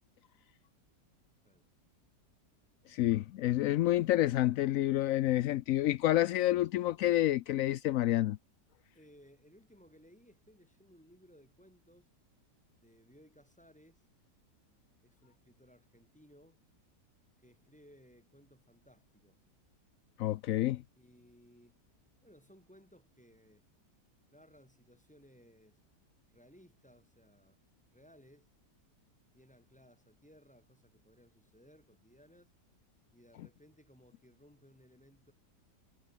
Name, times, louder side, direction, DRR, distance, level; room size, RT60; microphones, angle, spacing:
voice 1, 2.9-8.4 20.2-20.8, left 14 dB, 75° left, 0.7 m, -28 dB
voice 2, 8.9-12.1 12.7-14.1 15.0-16.6 17.4-19.4 21.0-21.8 22.2-23.7 24.3-25.8 26.3-27.6 27.9-28.5 29.3-32.5 33.1-35.3, equal, 5° left, 7.0 m, -61 dB
omnidirectional pair, 1.9 m